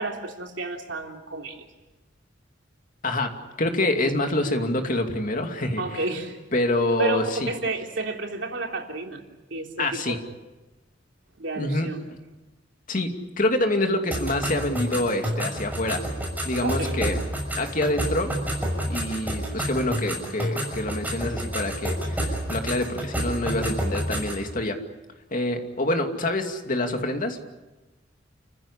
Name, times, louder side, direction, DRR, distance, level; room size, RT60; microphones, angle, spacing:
voice 1, 0.0-1.6 5.8-6.4 7.0-9.2 9.5-10.0 11.4-12.0 16.6-17.0, right 2 dB, 75° right, 2 dB, 3.4 m, -30 dB
voice 2, 3.6-6.0 6.5-7.5 9.8-10.2 11.6-11.9 12.9-16.0 16.4-17.2 17.5-18.3 18.9-24.8 25.3-27.5, left 1 dB, 45° left, 5 dB, 2.6 m, -26 dB
sound 1, 14.1-24.4, equal, 10° right, 6.3 m, -29 dB
30.0 x 15.5 x 9.9 m, 1.1 s
head